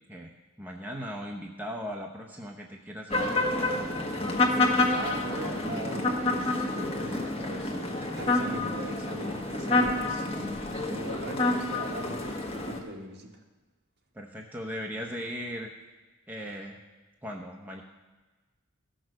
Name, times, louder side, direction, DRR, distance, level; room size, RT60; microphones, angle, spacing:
voice 1, 0.6-3.5 14.1-15.7 16.3-16.8 17.2-17.8, equal, 10° right, 0 dB, 0.8 m, -38 dB
sound 1, 3.1-12.8, left 2 dB, 25° left, 1.3 m, -28 dB
voice 2, 4.9-7.9 8.2-10.3 10.9-13.4, right 1 dB, 50° right, 0 dB, 1.8 m, -40 dB
14.5 x 6.2 x 6.4 m, 1.2 s
head